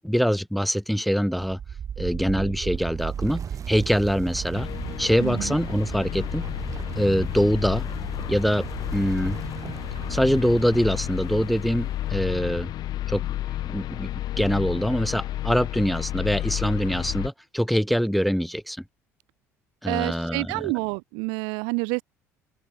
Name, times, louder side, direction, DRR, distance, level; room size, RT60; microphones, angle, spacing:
voice 1, 0.0-1.6 2.0-4.7 5.0-6.5 7.0-7.8 8.3-8.7 8.9-9.4 10.1-12.7 13.1-13.2 13.7-14.1 14.4-18.8 19.8-20.7, equal, ahead, 1.2 m, -24 dB
sound 1, 1.3-12.1, right 8 dB, 40° right, 4.6 m, -36 dB
sound 2, 4.5-17.3, left 13 dB, 55° left, 4.2 m, -31 dB
voice 2, 5.2-5.5 19.8-22.0, right 37 dB, 65° right, 0.7 m, -28 dB
open air
figure-of-eight pair, 60°, 8 cm